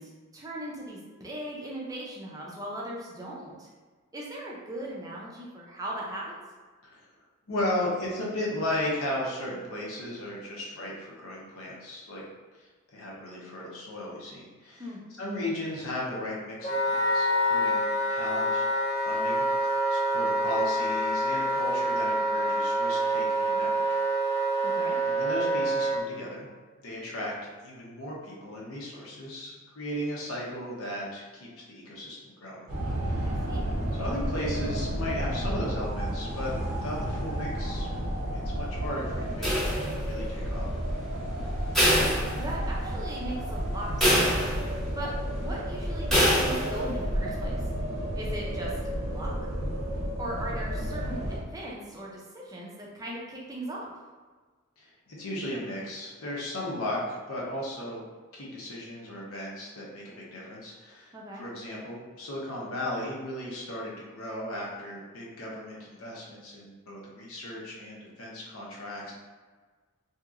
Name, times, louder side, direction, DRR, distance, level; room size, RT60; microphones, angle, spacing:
voice 1, 0.0-3.7 4.1-6.3 14.8-15.0 24.6-25.0 33.2-33.7 42.3-44.2 44.9-45.1 45.4-47.5 48.1-48.7 49.0-49.5 50.2-53.9 61.1-61.4, right 1 dB, 15° right, -3 dB, 0.4 m, -38 dB
voice 2, 7.5-12.2 12.6-14.9 15.2-18.7 19.0-23.8 24.6-24.7 25.0-26.5 26.8-27.3 27.6-32.7 33.0-33.4 33.9-37.9 38.3-40.7 54.8-58.0 58.3-69.1, left 1 dB, 75° left, -4 dB, 0.8 m, -36 dB
Wind instrument woodwind instrument, 16.6-26.0, right 1 dB, 35° left, 0.7 m, -26 dB
sound 1, 32.7-51.4, equal, 85° right, 0.8 m, -32 dB
sound 2, 39.4-40.2 41.7-42.9 43.3-43.4 44.0-44.9 46.1-46.9, equal, ahead, 0.8 m, -24 dB
2.8 x 2.8 x 2.4 m, 1.4 s
head